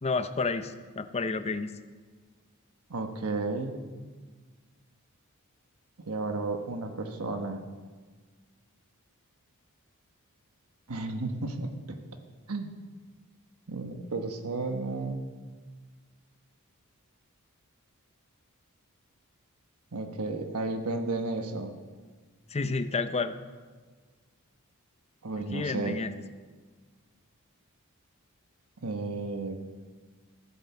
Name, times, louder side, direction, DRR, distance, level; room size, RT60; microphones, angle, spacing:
voice 1, 0.0-1.7 22.5-23.3 25.5-26.1, left 4 dB, 30° left, 10 dB, 0.6 m, -30 dB
voice 2, 2.9-3.8 6.0-7.6 10.9-12.0 12.5-12.7 13.7-15.2 19.9-21.7 25.2-26.0 28.8-29.6, right 3 dB, 80° right, 5 dB, 1.2 m, -33 dB
15.0 x 9.0 x 6.9 m, 1.4 s
head